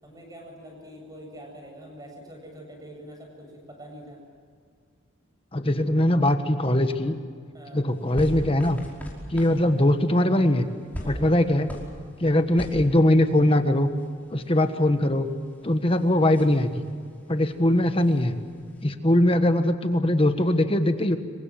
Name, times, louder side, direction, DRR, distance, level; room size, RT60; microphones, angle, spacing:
voice 1, 0.0-4.2 7.5-7.8 11.0-11.3, equal, 20° right, 1 dB, 8.0 m, -44 dB
voice 2, 5.5-7.2 7.7-8.8 9.3-10.7 11.0-11.7 12.2-13.9 14.3-15.3 15.6-16.8 17.3-18.4 18.8-21.2, left 1 dB, 25° left, 8 dB, 1.5 m, -21 dB
sound 1, 7.9-18.8, equal, 10° left, 5.1 m, -42 dB
27.0 x 24.0 x 7.7 m, 2.1 s
head